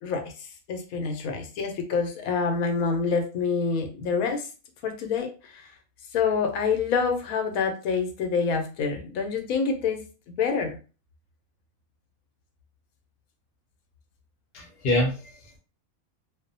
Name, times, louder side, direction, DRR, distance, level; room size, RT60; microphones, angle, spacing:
voice 1, 0.0-4.5 4.8-5.7 6.1-10.0 10.4-10.8, left 5 dB, 80° left, 5 dB, 1.0 m, -27 dB
voice 2, 14.5-15.6, left 1 dB, 55° left, -1 dB, 0.8 m, -26 dB
2.6 x 2.1 x 2.5 m, 0.34 s
omnidirectional pair, 1.5 m